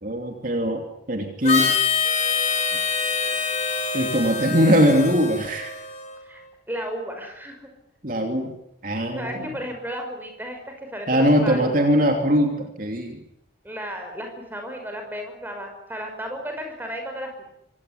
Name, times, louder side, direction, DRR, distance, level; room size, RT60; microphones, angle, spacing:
voice 1, 0.0-1.8 3.9-5.7 8.0-8.5 8.8-9.5 11.1-13.2, equal, 45° right, 3 dB, 2.9 m, -21 dB
Harmonica, 1.4-6.2, left 5 dB, 35° left, 3.7 m, -25 dB
voice 2, 6.2-7.7 9.1-11.7 13.6-17.4, equal, 10° right, 4 dB, 5.6 m, -34 dB
25.5 x 18.0 x 9.8 m, 0.80 s
head